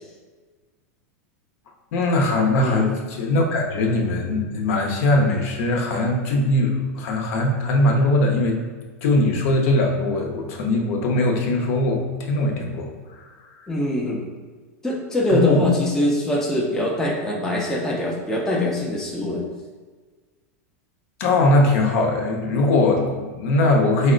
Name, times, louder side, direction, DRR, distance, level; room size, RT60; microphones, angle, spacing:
voice 1, 1.9-8.6 9.0-12.9 15.3-15.6 21.2-24.1, left 2 dB, 60° left, 2 dB, 0.7 m, -20 dB
voice 2, 2.6-2.9 13.7-14.3 14.8-19.4, left 1 dB, 5° left, -2 dB, 0.5 m, -23 dB
4.2 x 2.1 x 3.7 m, 1.4 s
supercardioid pair, 140°, 8 cm